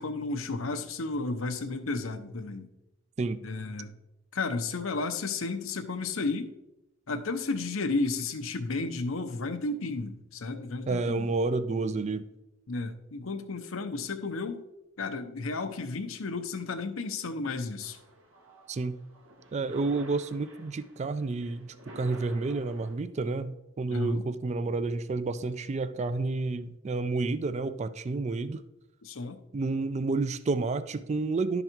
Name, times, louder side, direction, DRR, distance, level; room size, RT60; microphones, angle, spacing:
voice 1, 0.0-2.7 3.4-3.9 4.3-6.5 7.1-11.3 12.7-14.6 15.0-18.0 23.9-24.2 29.0-29.4, left 3 dB, 85° left, 8 dB, 0.7 m, -33 dB
voice 2, 10.9-12.2 18.7-19.0 19.5-28.6 29.5-31.6, right 3 dB, 35° right, 13 dB, 0.3 m, -30 dB
sound 1, 17.8-22.9, equal, 85° right, 1.7 m, -51 dB
11.0 x 4.0 x 4.4 m, 0.90 s
head